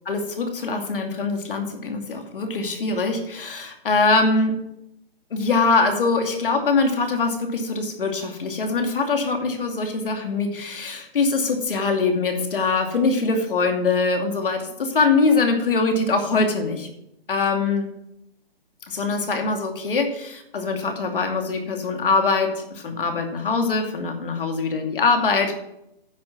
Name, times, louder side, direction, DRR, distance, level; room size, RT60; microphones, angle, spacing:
voice 1, 0.1-4.5 5.3-16.9 17.3-17.9 18.9-25.5, left 4 dB, 60° left, 4 dB, 2.6 m, -23 dB
9.9 x 7.9 x 6.1 m, 0.80 s
hypercardioid pair, 150°, 30 cm